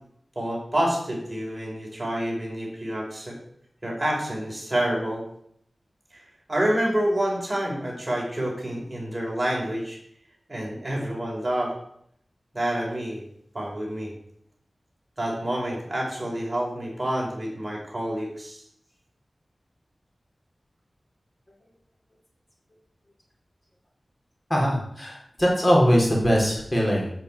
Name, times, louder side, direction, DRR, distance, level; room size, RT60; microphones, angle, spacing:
voice 1, 0.4-3.4 3.8-5.2 6.1-6.2 6.5-10.0 10.5-11.7 12.5-13.3 13.5-14.1 15.2-18.6, right 1 dB, 25° right, -3 dB, 5.3 m, -28 dB
voice 2, 24.5-27.1, equal, 30° left, -2 dB, 4.3 m, -21 dB
10.5 x 6.1 x 8.4 m, 0.70 s
wide cardioid pair, 85°, 0 cm